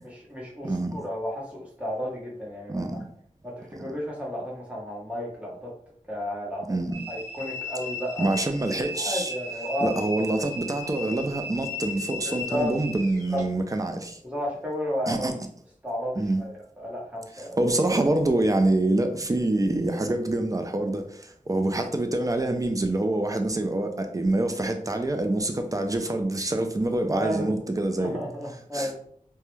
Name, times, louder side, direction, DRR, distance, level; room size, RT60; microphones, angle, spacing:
voice 1, 0.0-3.0 3.4-5.7 6.1-6.8 7.1-8.4 8.9-10.3 12.2-12.7 13.3-13.4 14.2-15.3 15.8-17.7 27.1-27.5 28.0-29.0, equal, 10° right, 0.9 m, -32 dB
voice 2, 0.6-1.0 2.7-3.1 6.7-7.0 8.2-9.3 9.8-14.2 15.1-15.3 16.2-16.4 17.6-28.2 28.7-28.9, right 2 dB, 25° right, 0.4 m, -26 dB
sound 1, 6.9-13.4, left 2 dB, 20° left, 0.8 m, -37 dB
2.2 x 2.1 x 3.1 m
wide cardioid pair, 50°, 14 cm